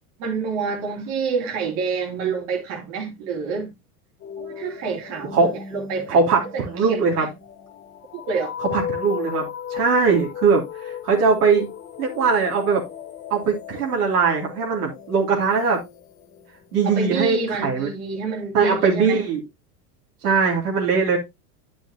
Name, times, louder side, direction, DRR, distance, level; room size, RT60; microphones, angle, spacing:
voice 1, 0.2-3.7 4.4-6.2 6.5-7.3 8.1-8.5 16.8-19.2, right 5 dB, 55° right, 3.2 m, -28 dB
sound 1, 4.2-16.9, left 9 dB, 30° left, 2.4 m, -36 dB
voice 2, 6.1-7.3 8.6-11.7 12.0-12.8 13.3-15.8 16.7-17.9 18.5-19.4 20.2-21.2, right 5 dB, 80° right, 3.3 m, -20 dB
9.7 x 6.2 x 2.9 m
hypercardioid pair, 110°, 45 cm